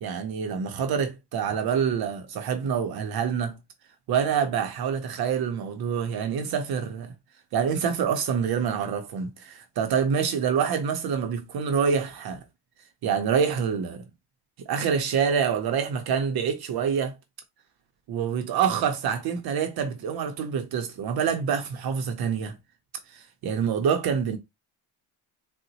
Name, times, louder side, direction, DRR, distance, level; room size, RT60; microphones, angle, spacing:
voice 1, 0.0-3.6 4.1-7.1 7.5-12.4 13.0-14.0 14.7-17.1 18.1-22.5 23.4-24.4, right 7 dB, 55° right, 0.6 m, -26 dB
3.8 x 2.0 x 2.7 m
cardioid pair, 155°, 46 cm